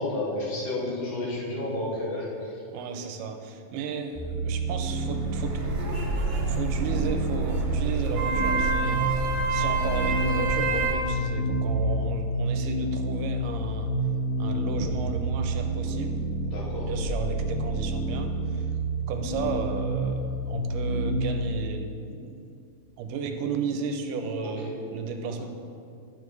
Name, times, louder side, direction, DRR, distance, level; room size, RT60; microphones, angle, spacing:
voice 1, 0.0-2.6 16.4-16.9 24.6-24.7, left 1 dB, 75° left, -6 dB, 3.2 m, -31 dB
voice 2, 2.7-13.9 14.4-16.2 16.8-18.7 19.1-22.4 23.0-25.5, right 5 dB, 85° right, 6 dB, 2.2 m, -34 dB
sound 1, 4.1-21.2, right 1 dB, 55° left, 2.0 m, -29 dB
sound 2, 4.9-10.9, right 4 dB, 65° right, 1.7 m, -28 dB
10.5 x 7.0 x 3.2 m, 2.5 s
omnidirectional pair, 3.7 m